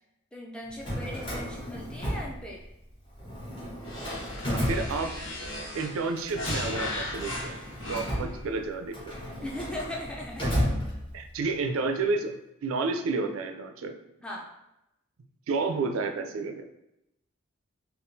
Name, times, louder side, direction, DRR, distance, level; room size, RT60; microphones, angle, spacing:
voice 1, 0.3-2.6 7.9-8.2 9.4-10.5 14.2-14.5, left 1 dB, 5° left, -3 dB, 0.4 m, -39 dB
Drawer open or close, 0.7-2.9 3.2-5.5 6.2-11.4, equal, 25° left, 1.0 m, -33 dB
sound 1, 3.8-8.4, left 1 dB, 65° left, 0.9 m, -37 dB
voice 2, 4.5-5.1 5.7-7.6 7.9-9.1 10.4-10.5 11.1-12.3 12.6-13.9 15.5-16.7, right 3 dB, 75° right, 6 dB, 0.4 m, -30 dB
3.5 x 2.4 x 2.6 m, 0.88 s
head